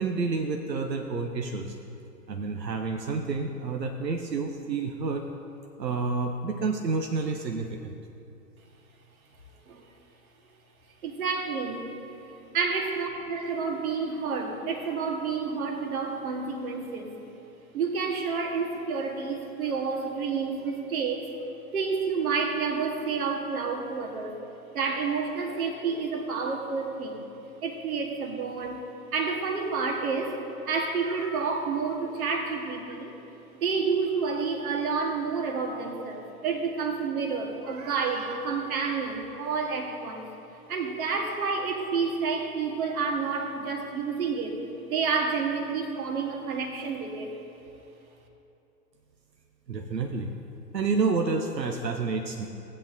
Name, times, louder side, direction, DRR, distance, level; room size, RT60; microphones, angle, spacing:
voice 1, 0.0-1.8 2.3-5.3 5.8-7.9 49.7-50.3 50.7-52.5, right 4 dB, 90° right, 4 dB, 0.8 m, -29 dB
voice 2, 11.0-11.9 12.5-17.1 17.7-21.3 21.7-24.4 24.7-27.3 27.6-28.8 29.1-30.4 30.6-33.1 33.5-40.3 40.7-44.6 44.8-47.3, right 5 dB, 60° right, 3 dB, 1.6 m, -29 dB
16.5 x 8.7 x 2.6 m, 2.9 s
figure-of-eight pair, 120°, 49 cm